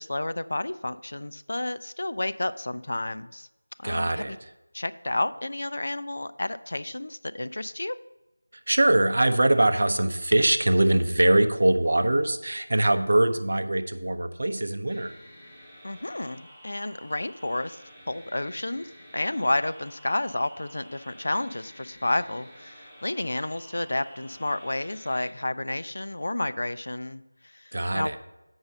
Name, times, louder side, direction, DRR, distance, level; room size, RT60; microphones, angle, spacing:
voice 1, 0.0-3.5 3.8-4.4 4.7-8.0 15.8-17.8 18.1-28.1, left 1 dB, 55° left, 14 dB, 0.3 m, -31 dB
voice 2, 3.8-4.4 8.7-15.1 27.7-28.2, right 1 dB, 50° right, 9 dB, 0.6 m, -22 dB
sound 1, 14.9-25.3, equal, ahead, 0.9 m, -50 dB
7.8 x 5.5 x 5.2 m, 0.99 s
figure-of-eight pair, 170°, 0 cm